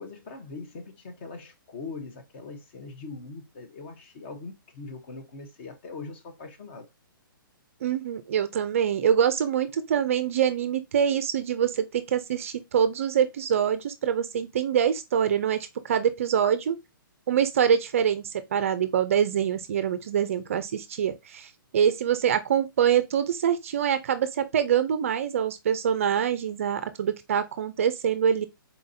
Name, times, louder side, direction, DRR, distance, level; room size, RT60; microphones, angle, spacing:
voice 1, 0.0-6.9, left 3 dB, 30° left, 0.8 m, -41 dB
voice 2, 7.8-16.8 17.3-18.2 18.5-21.5 21.7-28.5, right 8 dB, 35° right, 0.4 m, -25 dB
4.1 x 4.0 x 2.6 m
hypercardioid pair, 170°, 12 cm